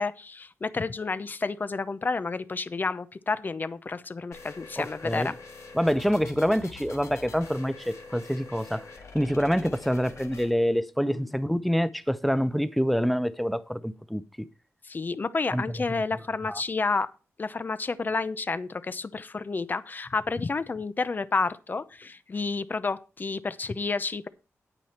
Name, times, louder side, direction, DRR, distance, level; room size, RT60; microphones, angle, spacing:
voice 1, 0.0-5.3 11.0-11.3 14.8-17.1 17.4-24.3, left 4 dB, 35° left, 0.7 m, -30 dB
sound 1, 4.3-10.5, left 4 dB, 75° left, 1.7 m, -45 dB
voice 2, 4.8-5.3 5.7-8.9 9.1-14.5 15.5-15.6 16.5-16.6, equal, ahead, 0.6 m, -26 dB
9.6 x 9.0 x 4.3 m
wide cardioid pair, 110°, 5 cm